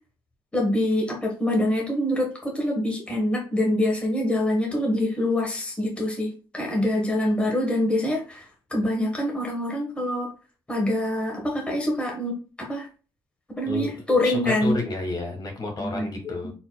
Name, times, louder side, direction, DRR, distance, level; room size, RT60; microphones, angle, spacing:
voice 1, 0.5-10.3 10.7-12.9 13.6-14.8 15.8-16.5, left 1 dB, 10° left, -1 dB, 1.4 m, -25 dB
voice 2, 13.7-14.0 14.2-16.5, left 2 dB, 45° left, 2 dB, 1.6 m, -31 dB
4.2 x 4.0 x 2.3 m, 0.35 s
cardioid pair, 100°, 9 cm